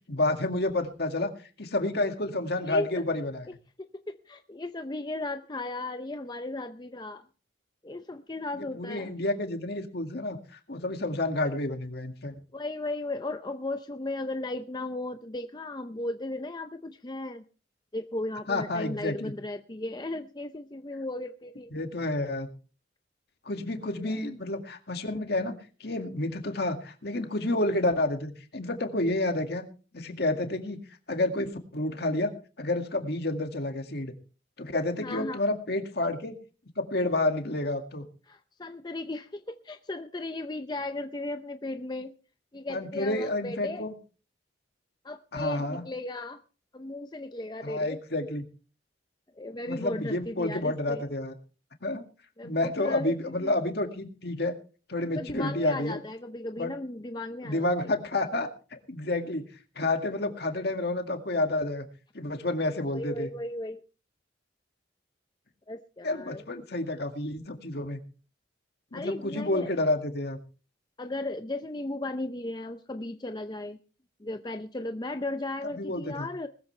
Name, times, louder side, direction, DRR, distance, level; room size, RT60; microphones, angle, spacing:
voice 1, 0.1-1.3 1.6-3.5 8.5-12.3 18.5-19.3 21.7-22.5 23.5-29.6 29.9-30.8 31.1-34.1 34.6-36.3 36.8-38.0 42.7-43.9 45.3-45.8 47.6-48.4 49.6-51.3 51.8-52.0 52.4-54.5 54.9-56.0 56.6-56.7 57.4-59.5 59.8-61.9 62.1-63.3 66.0-68.0 68.9-70.4 75.7-76.3, left 2 dB, 55° left, 5 dB, 2.0 m, -30 dB
voice 2, 2.6-3.0 3.8-7.3 7.8-9.1 12.5-17.4 17.9-21.7 24.0-24.2 35.0-35.4 38.3-42.1 42.5-43.8 45.0-46.4 46.7-48.0 49.4-51.1 52.4-53.5 55.2-57.9 62.9-63.8 65.7-66.4 68.9-69.7 71.0-73.8 74.2-76.5, left 2 dB, 20° left, 7 dB, 0.6 m, -36 dB
20.0 x 14.0 x 3.3 m, 0.37 s
head